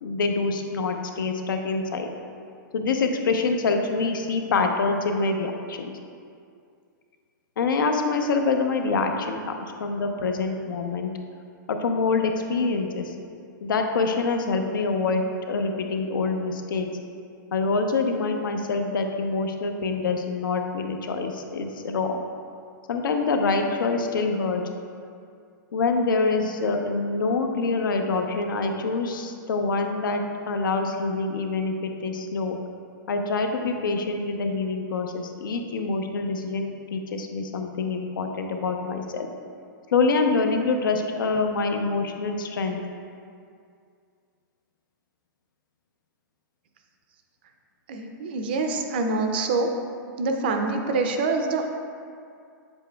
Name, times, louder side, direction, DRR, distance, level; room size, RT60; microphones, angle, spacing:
voice 1, 0.0-2.1 2.7-5.9 7.6-11.1 11.7-13.1 13.6-16.9 17.5-22.2 22.9-24.6 25.7-32.6 33.1-39.3 39.9-42.8, left 4 dB, 80° left, 4 dB, 0.8 m, -25 dB
voice 2, 47.9-49.7 50.2-51.7, right 3 dB, 30° right, 4 dB, 0.4 m, -25 dB
8.0 x 7.2 x 2.3 m, 2.3 s
hypercardioid pair, 180°, 11 cm